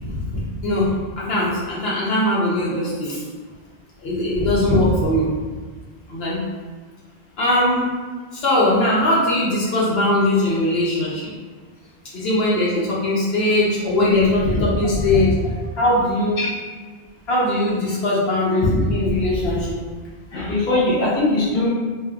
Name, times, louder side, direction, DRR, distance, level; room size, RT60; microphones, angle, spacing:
voice 1, 0.0-3.2 4.0-5.3 6.1-6.4 7.4-7.8 8.3-11.3 12.1-16.4 17.3-19.8, left 1 dB, 80° left, -6 dB, 0.9 m, -20 dB
voice 2, 20.3-21.7, left 2 dB, 50° left, -7 dB, 1.0 m, -20 dB
3.5 x 2.5 x 2.2 m, 1.5 s
omnidirectional pair, 1.0 m